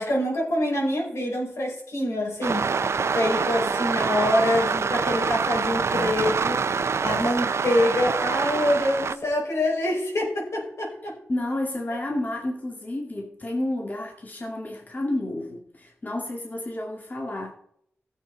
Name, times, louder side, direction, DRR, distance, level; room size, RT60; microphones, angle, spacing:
voice 1, 0.0-2.7 3.1-6.6 7.0-11.1, left 1 dB, 90° left, -2 dB, 5.0 m, -25 dB
sound 1, 2.4-9.2, right 5 dB, 70° right, 0.4 m, -25 dB
voice 2, 11.3-17.5, left 1 dB, 35° left, 0 dB, 2.0 m, -30 dB
17.0 x 7.4 x 3.9 m, 0.69 s
wide cardioid pair, 115°, 5 cm